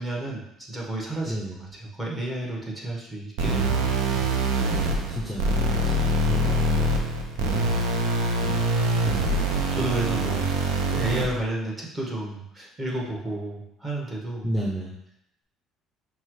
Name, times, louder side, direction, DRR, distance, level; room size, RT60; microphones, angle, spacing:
voice 1, 0.0-4.3 7.3-7.7 9.3-14.5, right 1 dB, 25° right, -3 dB, 1.3 m, -32 dB
voice 2, 1.3-1.6 5.1-7.0 8.4-8.6 14.4-15.0, right 1 dB, 5° left, -3 dB, 0.6 m, -33 dB
sound 1, 3.4-11.4, right 1 dB, 85° right, 0.5 m, -24 dB
5.4 x 2.3 x 3.2 m, 0.80 s
supercardioid pair, 90°, 0 cm